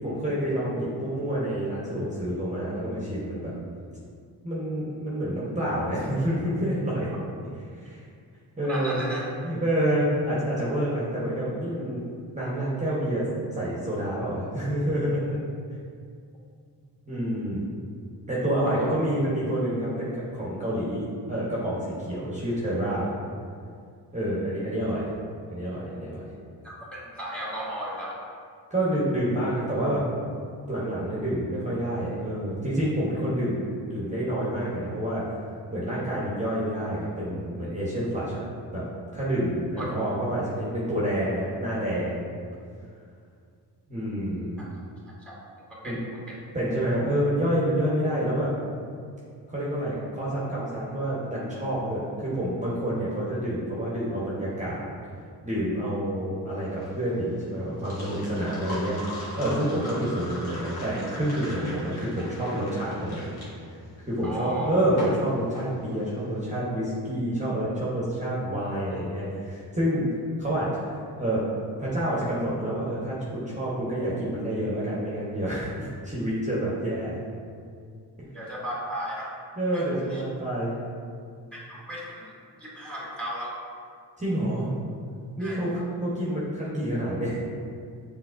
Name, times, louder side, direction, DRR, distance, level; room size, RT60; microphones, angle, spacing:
voice 1, 0.0-3.5 4.4-7.1 7.7-8.0 8.6-9.1 9.4-12.0 12.3-13.3 13.6-15.3 17.1-17.6 18.3-21.8 22.1-23.1 24.1-25.1 25.5-26.2 28.7-30.0 30.7-35.2 35.7-38.4 38.7-38.8 39.1-42.3 43.9-44.5 45.8-46.0 46.5-48.5 49.5-54.8 55.4-63.3 64.1-70.1 70.4-70.7 71.2-71.4 71.8-77.2 79.6-80.7 84.2-84.7 85.4-87.4, right 1 dB, 15° right, -7 dB, 1.1 m, -28 dB
voice 2, 8.7-9.3 18.8-18.9 26.6-28.3 39.8-39.9 45.0-45.4 45.7-46.4 64.2-64.7 78.3-79.3 79.7-80.2 81.5-83.6 85.4-85.7, equal, 5° left, -5 dB, 1.3 m, -35 dB
sound 1, 56.6-66.5, left 1 dB, 60° left, 1.5 m, -40 dB
5.7 x 3.4 x 2.6 m, 2.2 s
cardioid pair, 70°, 42 cm